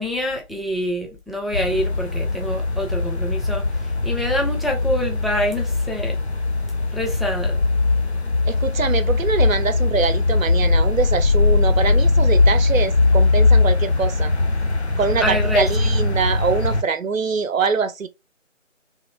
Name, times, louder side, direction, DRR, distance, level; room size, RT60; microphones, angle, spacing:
voice 1, 0.0-3.6 4.0-6.2 6.9-7.6 15.2-15.7, equal, ahead, 0.4 m, -25 dB
sound 1, 1.5-16.8, left 3 dB, 55° left, 0.5 m, -20 dB
voice 2, 8.5-14.3 15.0-18.1, right 5 dB, 85° right, 0.6 m, -24 dB
3.0 x 2.2 x 2.3 m
figure-of-eight pair, 180°, 39 cm